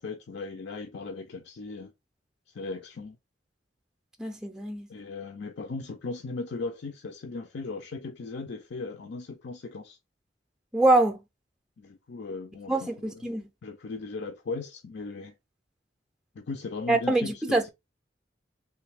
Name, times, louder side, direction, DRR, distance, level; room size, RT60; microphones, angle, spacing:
voice 1, 0.0-1.9 2.5-3.2 4.9-10.0 11.8-13.3 13.6-15.3 16.4-17.7, left 3 dB, 70° left, 0.5 m, -37 dB
voice 2, 4.2-4.9 10.7-11.2 12.7-13.4 16.9-17.7, right 2 dB, 5° right, 0.4 m, -24 dB
3.3 x 2.6 x 3.3 m
head